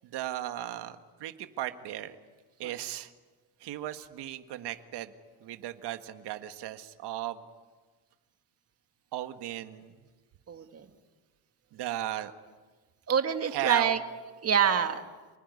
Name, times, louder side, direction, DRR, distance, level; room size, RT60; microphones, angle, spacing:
voice 1, 0.0-2.2 2.6-3.1 3.6-5.1 5.4-7.4 9.1-9.9 11.7-12.3 13.5-13.9, right 13 dB, 75° right, 8 dB, 1.8 m, -36 dB
voice 2, 10.5-10.9 13.1-14.0 14.4-15.1, right 7 dB, 35° right, 7 dB, 2.0 m, -26 dB
29.0 x 20.5 x 9.8 m, 1.4 s
cardioid pair, 135°, 41 cm